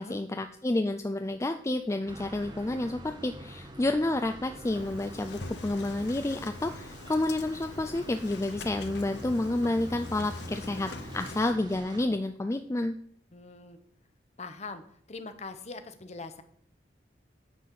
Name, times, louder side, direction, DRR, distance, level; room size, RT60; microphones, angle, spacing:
voice 1, 0.0-13.0, left 2 dB, 15° left, 7 dB, 0.4 m, -30 dB
sound 1, 2.1-12.1, right 1 dB, 25° right, 0.9 m, -46 dB
Engine starting, 4.6-11.5, left 3 dB, 75° left, 0.8 m, -43 dB
voice 2, 13.3-13.8 14.4-14.8 15.1-16.4, left 3 dB, 40° left, 10 dB, 0.8 m, -42 dB
9.4 x 4.2 x 7.4 m, 0.65 s
head